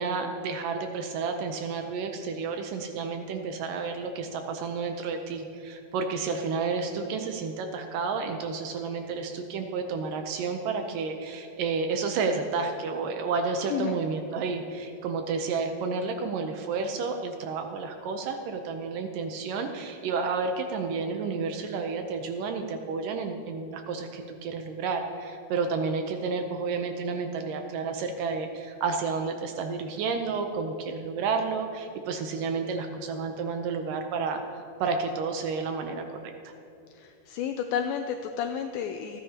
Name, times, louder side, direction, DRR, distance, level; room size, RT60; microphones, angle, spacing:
voice 1, 0.0-34.4 34.8-36.5, right 4 dB, 75° right, 5 dB, 2.1 m, -31 dB
voice 2, 36.9-39.2, left 8 dB, 80° left, 6 dB, 2.2 m, -31 dB
27.5 x 10.5 x 2.9 m, 2.7 s
omnidirectional pair, 4.4 m